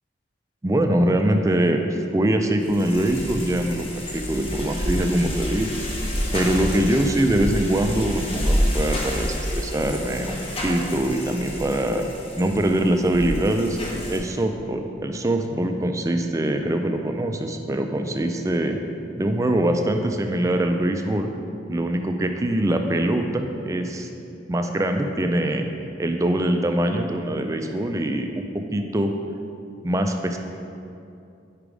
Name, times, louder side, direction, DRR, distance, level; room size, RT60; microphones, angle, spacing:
voice 1, 0.6-1.8 2.1-5.8 6.3-10.4 10.6-12.0 12.4-13.8 14.1-18.8 19.2-21.3 21.7-24.1 24.5-25.7 26.0-29.1 29.8-30.4, right 1 dB, 15° right, 5 dB, 0.3 m, -23 dB
sound 1, 2.6-14.2, equal, 30° left, 0.9 m, -29 dB
5.1 x 4.9 x 4.8 m, 2.6 s
head